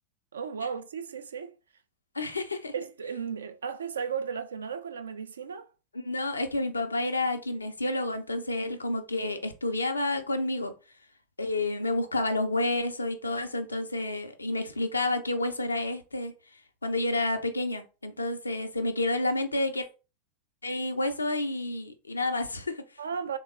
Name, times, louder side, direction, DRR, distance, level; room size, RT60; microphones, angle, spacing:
voice 1, 0.3-1.5 2.7-5.7 23.0-23.4, right 6 dB, 70° right, 0.4 m, -35 dB
voice 2, 2.1-2.7 5.9-10.7 11.4-16.3 16.8-19.9 20.6-22.8, left 2 dB, 80° left, 0.5 m, -30 dB
3.4 x 2.2 x 3.2 m
figure-of-eight pair, 90°, 0 cm